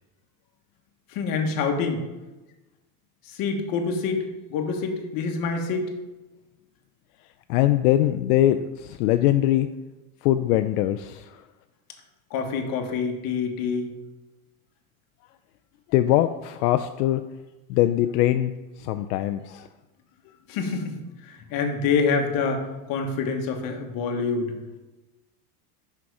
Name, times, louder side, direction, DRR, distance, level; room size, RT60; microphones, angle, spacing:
voice 1, 1.1-2.0 3.3-4.2 4.5-5.9 12.3-13.9 20.5-21.0 21.2-24.5, left 5 dB, 45° left, 3 dB, 1.4 m, -26 dB
voice 2, 7.5-9.7 10.2-11.4 15.9-17.2 17.7-18.5 18.8-19.7, left 13 dB, 80° left, 9 dB, 0.5 m, -22 dB
6.1 x 5.8 x 4.7 m, 1.1 s
supercardioid pair, 135°, 47 cm